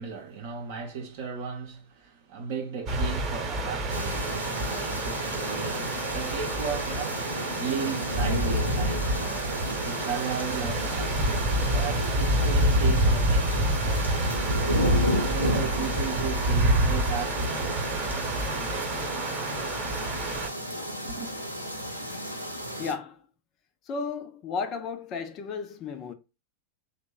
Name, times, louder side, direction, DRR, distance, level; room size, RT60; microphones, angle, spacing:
voice 1, 0.0-14.1 14.7-18.3 21.1-21.3, right 6 dB, 50° right, 0.7 m, -36 dB
sound 1, 2.9-20.5, right 1 dB, 30° right, 0.9 m, -27 dB
sound 2, 3.9-22.9, equal, 90° left, 0.6 m, -33 dB
voice 2, 22.8-23.2 23.9-26.1, left 5 dB, 35° left, 0.4 m, -33 dB
2.9 x 2.1 x 3.7 m
figure-of-eight pair, 90°, 0 cm